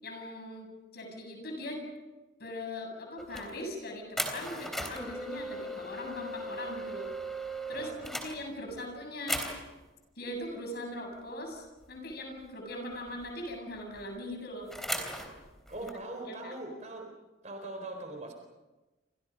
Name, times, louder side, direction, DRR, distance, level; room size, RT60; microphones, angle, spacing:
voice 1, 0.0-1.8 2.4-7.1 7.7-9.4 10.2-14.7 16.2-16.5, left 1 dB, 50° left, 3 dB, 7.8 m, -40 dB
sound 1, 3.2-3.6 4.2-8.9 9.3-9.8 11.8-12.1 12.4-12.5 12.9-14.0 14.7-15.9, equal, ahead, 3.4 m, -37 dB
voice 2, 7.7-8.0 15.7-17.1 17.4-18.3, right 2 dB, 35° right, 4 dB, 4.1 m, -41 dB
29.0 x 27.0 x 5.3 m, 1.1 s
head